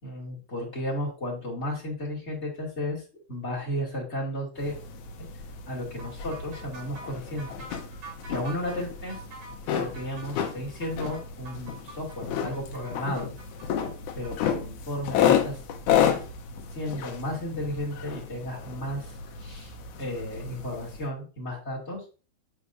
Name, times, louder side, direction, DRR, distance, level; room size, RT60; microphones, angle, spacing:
voice 1, 0.0-4.8 5.7-7.7 8.3-9.2 9.8-13.3 14.1-15.6 16.7-22.0, left 1 dB, 25° left, -4 dB, 2.3 m, -34 dB
sound 1, 4.6-21.1, left 9 dB, 75° left, 2.3 m, -31 dB
sound 2, 6.0-14.5, right 3 dB, 75° right, 4.2 m, -46 dB
8.3 x 6.8 x 2.6 m, 0.34 s
omnidirectional pair, 3.6 m